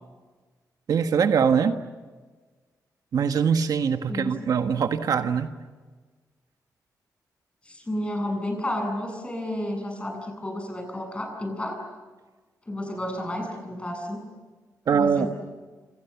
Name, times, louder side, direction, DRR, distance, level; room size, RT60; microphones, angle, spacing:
voice 1, 0.9-1.8 3.1-5.5 14.9-15.3, right 6 dB, 75° right, 8 dB, 1.4 m, -22 dB
voice 2, 4.1-4.5 7.6-11.8 12.7-14.2 14.9-15.3, left 1 dB, 15° left, 3 dB, 7.8 m, -31 dB
28.0 x 27.5 x 7.1 m, 1.3 s
wide cardioid pair, 115°, 6 cm